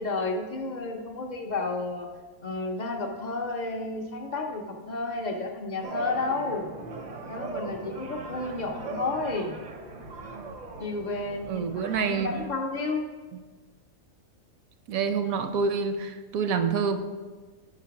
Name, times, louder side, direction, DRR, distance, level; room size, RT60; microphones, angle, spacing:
voice 1, 0.0-2.1 2.4-6.7 7.3-9.5 10.8-13.0, left 3 dB, 60° left, 3 dB, 0.4 m, -31 dB
sound 1, 5.8-12.5, right 3 dB, 50° right, 0.5 m, -39 dB
voice 2, 11.5-12.3 14.9-17.0, right 5 dB, 80° right, 8 dB, 1.0 m, -27 dB
5.2 x 4.9 x 5.8 m, 1.4 s
omnidirectional pair, 1.5 m